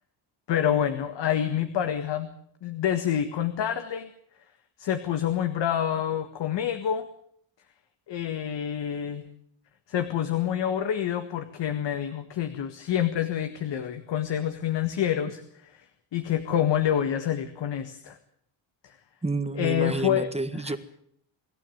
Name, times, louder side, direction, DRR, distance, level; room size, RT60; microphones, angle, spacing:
voice 1, 0.5-2.3 2.6-4.1 4.8-7.0 8.1-9.3 9.9-15.4 16.1-18.2 18.8-19.0 19.6-20.3 20.6-20.8, left 9 dB, 65° left, 8 dB, 1.9 m, -27 dB
voice 2, 19.2-20.8, right 3 dB, 15° right, 10 dB, 1.7 m, -29 dB
25.0 x 12.5 x 9.3 m, 0.68 s
cardioid pair, 110°, 46 cm